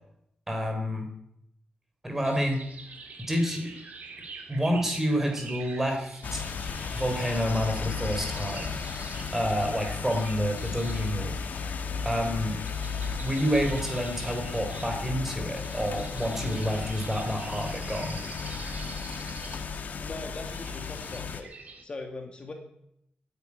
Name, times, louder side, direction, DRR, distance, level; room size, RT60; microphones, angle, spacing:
voice 1, 0.5-1.1 2.0-2.6 3.3-3.7 4.5-6.4 6.9-8.8 9.3-11.4 12.0-12.6 13.2-18.2, equal, 10° right, 3 dB, 3.6 m, -28 dB
sound 1, 2.2-21.8, right 4 dB, 55° right, 2.5 m, -46 dB
sound 2, 6.2-21.4, left 5 dB, 70° left, 1.4 m, -35 dB
voice 2, 20.0-21.5 21.8-22.5, left 3 dB, 35° left, 3 dB, 2.2 m, -40 dB
12.0 x 9.8 x 9.7 m, 0.77 s
wide cardioid pair, 130°, 3 cm